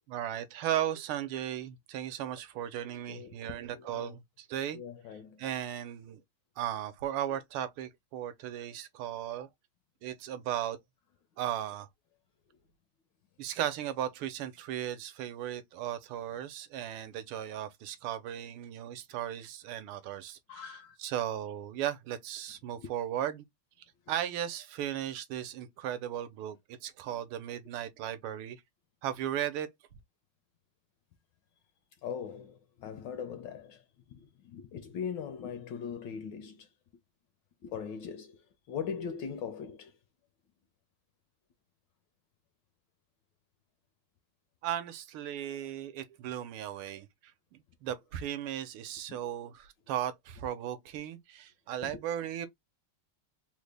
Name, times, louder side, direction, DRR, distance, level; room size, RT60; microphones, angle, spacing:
voice 1, 0.1-4.8 5.4-6.2 6.6-9.5 10.0-10.8 11.4-11.9 13.4-23.5 24.1-28.6 29.0-29.7 44.6-52.5, right 11 dB, 80° right, 1.4 m, -36 dB
voice 2, 3.7-4.2 4.7-5.4 20.5-21.0 22.8-22.9 32.0-33.8 34.1-36.7 37.6-38.4 38.7-39.9 49.1-49.2 51.8-52.0, left 7 dB, 75° left, 1.1 m, -40 dB
3.8 x 2.1 x 3.2 m
omnidirectional pair, 2.4 m